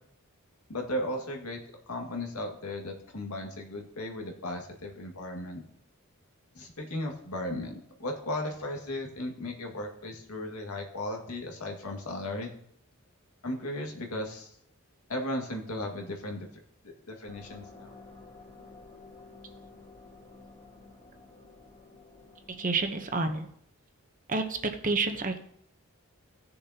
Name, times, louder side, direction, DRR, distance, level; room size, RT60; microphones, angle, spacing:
voice 1, 0.7-1.6 1.9-5.6 6.5-7.7 8.0-12.5 13.4-14.5 15.1-16.5 17.1-17.9, left 1 dB, 90° left, 1 dB, 2.0 m, -36 dB
sound 1, 17.3-23.3, left 3 dB, 35° left, 2.9 m, -52 dB
voice 2, 22.6-23.5 24.3-25.4, right 3 dB, 35° right, 7 dB, 0.9 m, -29 dB
17.0 x 6.8 x 2.9 m, 0.66 s
head